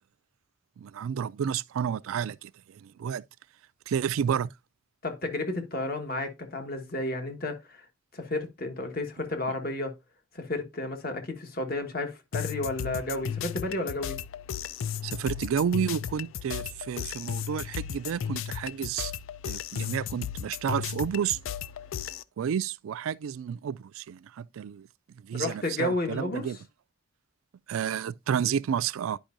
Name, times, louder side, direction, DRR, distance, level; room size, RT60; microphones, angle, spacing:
voice 1, 0.8-3.2 3.9-4.5 15.0-19.1 19.5-21.4 22.4-24.9 25.2-26.6 27.7-29.2, right 8 dB, 80° right, 0.3 m, -31 dB
voice 2, 5.0-7.8 8.1-9.9 10.3-14.2 25.3-26.4, left 2 dB, 45° left, 1.4 m, -32 dB
sound 1, 12.3-22.2, left 8 dB, 70° left, 0.4 m, -35 dB
10.0 x 5.3 x 2.5 m
head